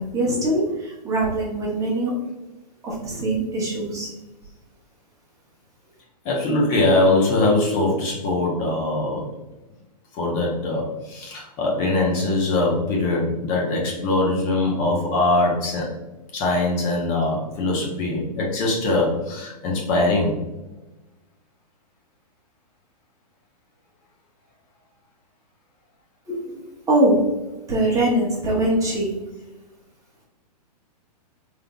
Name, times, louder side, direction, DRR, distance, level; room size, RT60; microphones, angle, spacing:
voice 1, 0.0-2.1 2.8-4.1 26.3-26.6 26.9-27.2 27.7-29.1, right 1 dB, 15° right, -5 dB, 1.0 m, -22 dB
voice 2, 6.2-9.3 10.1-15.9 16.3-20.4, left 2 dB, 35° left, -2 dB, 1.0 m, -22 dB
3.7 x 3.2 x 2.3 m, 1.1 s
hypercardioid pair, 130°, 21 cm